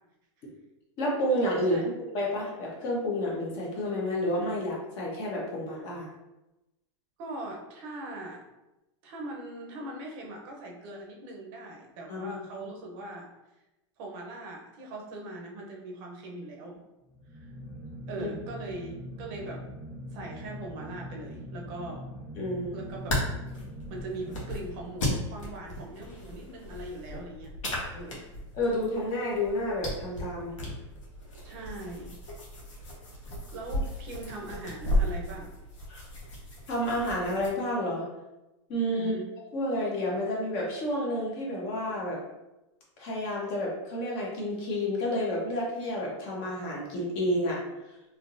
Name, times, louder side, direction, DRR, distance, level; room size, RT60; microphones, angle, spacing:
voice 1, 1.0-1.8 2.1-6.1 12.1-12.4 18.2-18.3 22.3-22.8 28.5-30.5 35.9-36.0 36.7-38.1 38.7-39.1 39.5-42.2 43.0-47.6, left 1 dB, 35° left, -3 dB, 1.1 m, -30 dB
voice 2, 7.2-8.4 9.0-13.3 14.0-16.8 17.3-17.5 18.1-19.6 20.1-22.1 22.7-23.1 23.9-27.5 27.9-28.2 31.4-32.1 33.5-35.5 38.7-39.3, right 2 dB, 45° right, 0 dB, 0.7 m, -40 dB
sound 1, 17.0-25.4, equal, 5° left, 0.4 m, -43 dB
sound 2, 22.8-37.5, left 1 dB, 90° left, 1.2 m, -35 dB
3.6 x 2.7 x 2.6 m, 0.97 s
supercardioid pair, 150°, 16 cm